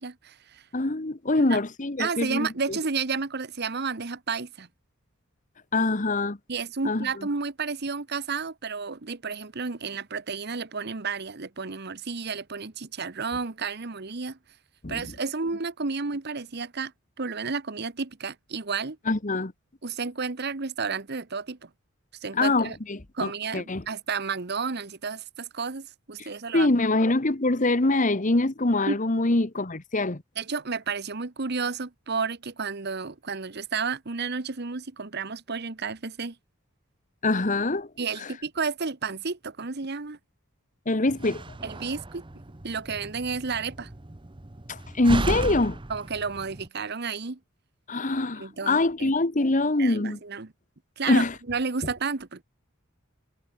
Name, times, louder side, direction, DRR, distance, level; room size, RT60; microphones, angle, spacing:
voice 1, 0.0-0.6 1.5-1.6 2.0-4.7 6.5-14.4 14.9-16.9 17.2-19.0 19.8-21.7 22.2-22.8 23.1-26.7 28.9-29.0 30.4-36.3 38.0-40.2 41.6-42.2 42.6-43.9 45.9-47.4 48.4-49.1 49.8-50.5 51.0-51.2 51.5-52.4, right 5 dB, 55° right, 1.1 m, -31 dB
voice 2, 0.7-2.8 5.7-6.4 6.8-7.1 14.8-15.1 19.1-19.5 22.3-23.8 26.2-30.2 37.2-37.9 38.2-38.3 40.9-41.4 44.7-45.8 47.9-50.2 51.1-51.3, left 2 dB, 40° left, 1.3 m, -24 dB
Slam, 41.1-46.7, right 2 dB, 25° right, 1.0 m, -35 dB
head